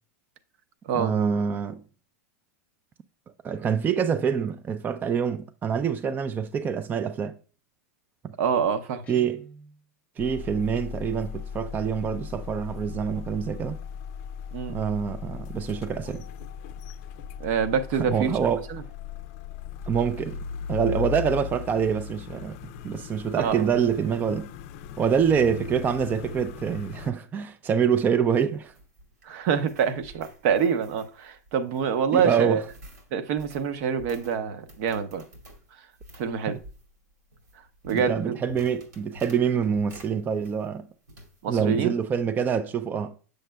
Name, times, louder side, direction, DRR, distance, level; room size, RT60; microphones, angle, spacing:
voice 1, 0.9-1.8 3.4-7.3 9.1-9.4 10.2-13.8 14.7-16.2 18.0-18.6 19.9-20.4 20.7-24.5 25.0-28.7 32.1-32.6 37.9-40.9 41.5-43.1, right 7 dB, 20° right, 0.4 m, -26 dB
voice 2, 8.4-9.0 14.5-14.8 17.4-18.3 18.7-18.8 23.3-23.7 29.2-32.6 33.1-35.2 36.1-36.6 37.8-38.4 41.4-41.9, right 7 dB, 55° right, 0.8 m, -26 dB
Guitar, 9.0-9.8, right 3 dB, 15° left, 0.9 m, -48 dB
sound 1, 10.2-27.1, left 8 dB, 55° left, 0.5 m, -37 dB
sound 2, 28.2-40.8 41.1-41.8, equal, 90° right, 2.2 m, -49 dB
7.9 x 6.5 x 2.2 m
hypercardioid pair, 120°, 9 cm